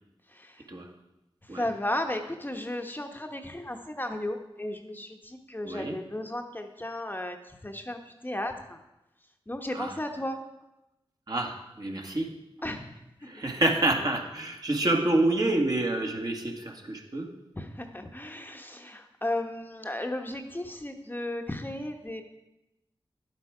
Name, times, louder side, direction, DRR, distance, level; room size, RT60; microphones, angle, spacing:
voice 1, 1.5-7.4 7.6-8.0 8.2-8.5 9.5-10.4 12.6-12.8 17.6-22.2, left 1 dB, 20° left, 5 dB, 1.0 m, -34 dB
voice 2, 5.6-6.0 9.7-10.0 11.3-12.3 13.3-17.3, right 2 dB, 45° right, 1 dB, 1.8 m, -28 dB
11.0 x 8.1 x 4.9 m, 0.93 s
wide cardioid pair, 55°, 10 cm